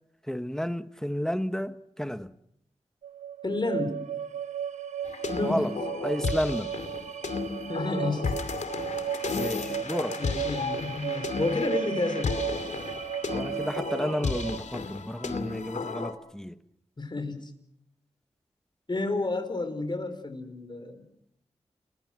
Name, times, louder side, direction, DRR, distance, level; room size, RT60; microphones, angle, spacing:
voice 1, 0.3-2.3 5.4-5.7 6.0-6.7 9.3-10.2 13.3-16.5, equal, 5° left, 1.3 m, -31 dB
sound 1, 3.0-14.6, right 9 dB, 85° right, 1.1 m, -35 dB
voice 2, 3.4-4.0 5.3-5.8 7.7-8.3 10.2-12.4 17.0-17.5 18.9-21.0, left 2 dB, 40° left, 4.7 m, -30 dB
sound 2, 5.0-16.1, left 5 dB, 85° left, 2.5 m, -34 dB
29.5 x 21.5 x 6.2 m
cardioid pair, 60°, 12 cm